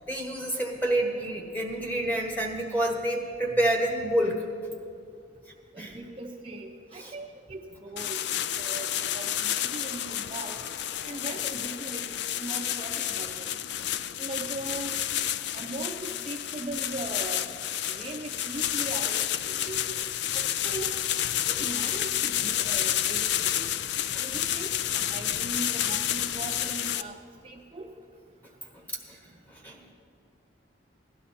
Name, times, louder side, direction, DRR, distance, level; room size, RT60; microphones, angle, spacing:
voice 1, 0.1-4.4 5.8-6.0 7.0-7.1 15.4-15.5 24.1-24.4 28.7-28.8 29.1-29.2 29.5-29.9, right 1 dB, 10° left, 1 dB, 1.3 m, -28 dB
voice 2, 5.7-8.2 8.6-10.6 11.0-13.6 14.2-14.9 15.5-17.5 17.9-20.0 20.3-20.9 21.5-23.7 24.2-27.2 27.4-27.9, right 2 dB, 30° right, 1 dB, 0.6 m, -39 dB
sound 1, 8.0-27.0, left 11 dB, 60° left, 0.3 m, -30 dB
17.0 x 11.5 x 4.3 m, 2.4 s
head